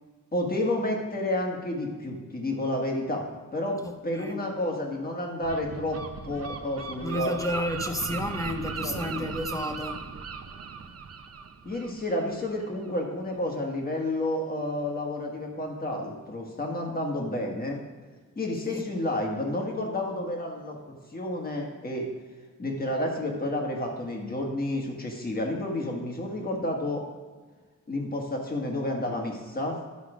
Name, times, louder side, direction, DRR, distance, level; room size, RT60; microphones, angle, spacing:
voice 1, 0.3-3.2 3.5-3.8 4.0-6.0 6.2-7.3 8.8-9.3 11.6-17.8 18.3-22.1 22.6-27.0 27.9-29.8, left 1 dB, 30° left, 1 dB, 1.6 m, -30 dB
voice 2, 3.8-4.4 7.0-10.0 18.6-18.8, left 1 dB, 10° left, 4 dB, 0.6 m, -31 dB
Gull seagull, 5.4-12.9, right 5 dB, 50° right, 0.7 m, -38 dB
11.0 x 5.7 x 5.0 m, 1.4 s
wide cardioid pair, 170°, 32 cm